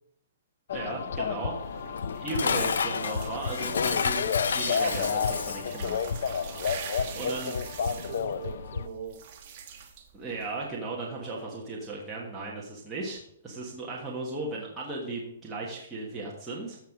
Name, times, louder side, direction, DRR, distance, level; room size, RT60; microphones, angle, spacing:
sound 1, 0.7-8.9, left 6 dB, 50° left, 0.6 m, -31 dB
voice 1, 0.7-1.8 2.2-6.0 7.1-7.8 10.1-16.8, right 3 dB, 5° right, -6 dB, 1.4 m, -36 dB
sound 2, 1.5-10.7, right 7 dB, 25° right, 1.5 m, -44 dB
Dishes pots and pans, 2.0-5.8, left 6 dB, 90° left, 0.7 m, -30 dB
voice 2, 6.9-9.2, right 5 dB, 45° right, 0 dB, 3.1 m, -42 dB
14.5 x 5.6 x 5.9 m, 0.72 s
hypercardioid pair, 180°, 0 cm